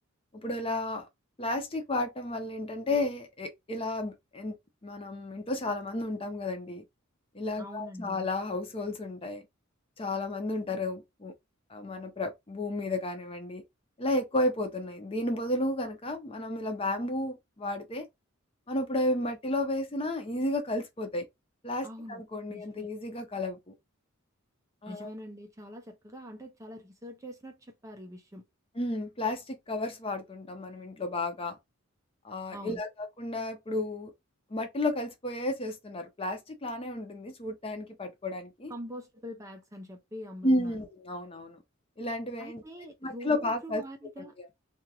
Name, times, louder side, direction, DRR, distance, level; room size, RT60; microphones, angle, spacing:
voice 1, 0.3-1.1 1.4-4.5 4.8-6.8 7.3-9.4 10.0-11.3 11.7-13.6 14.0-18.1 18.7-21.3 21.6-23.7 24.8-25.1 28.7-31.6 32.2-34.1 34.5-38.7 40.4-41.6 42.0-42.6 43.0-43.8 44.2-44.5, left 2 dB, 25° left, 0.6 m, -32 dB
voice 2, 7.6-8.3 21.8-22.2 22.5-22.9 24.9-28.4 32.5-32.8 38.7-40.7 42.4-44.3, equal, 15° right, 0.5 m, -44 dB
2.8 x 2.4 x 2.8 m
head